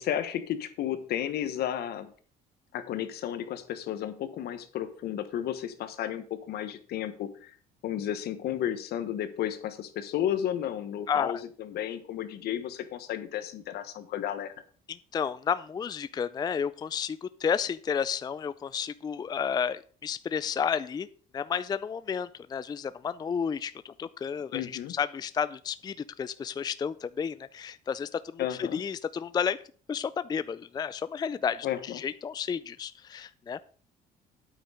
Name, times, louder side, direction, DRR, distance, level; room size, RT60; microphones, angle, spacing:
voice 1, 0.0-2.1 2.7-7.5 7.8-14.5 24.5-24.9 28.4-28.8 31.6-32.0, left 10 dB, 70° left, 11 dB, 1.4 m, -33 dB
voice 2, 11.1-11.4 14.9-21.1 21.3-29.6 29.9-33.6, left 7 dB, 25° left, 15 dB, 0.4 m, -32 dB
9.2 x 8.7 x 5.0 m, 0.44 s
cardioid pair, 110°, 17 cm